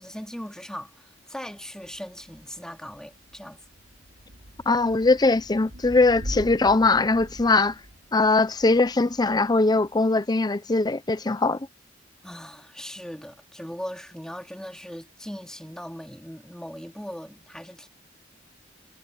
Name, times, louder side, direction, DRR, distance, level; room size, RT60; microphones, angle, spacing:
voice 1, 0.0-3.6 12.2-17.9, equal, 5° left, 2.8 m, -39 dB
Thunder / Rain, 1.8-10.1, equal, 85° right, 3.2 m, -43 dB
voice 2, 4.7-7.7 8.1-11.7, left 3 dB, 20° left, 0.6 m, -21 dB
head